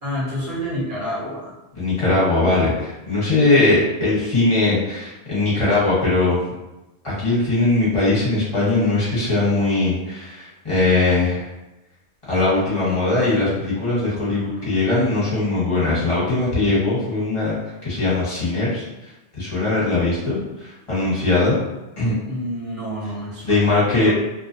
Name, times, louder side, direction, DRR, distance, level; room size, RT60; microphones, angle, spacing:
voice 1, 0.0-1.6 22.3-24.1, equal, 50° right, -7 dB, 1.0 m, -28 dB
voice 2, 1.8-6.4 7.0-11.5 12.3-17.6 17.8-18.8 19.4-21.6 22.0-22.2 23.4-24.1, left 2 dB, 30° left, -9 dB, 1.1 m, -20 dB
2.6 x 2.1 x 2.6 m, 1.0 s
omnidirectional pair, 1.1 m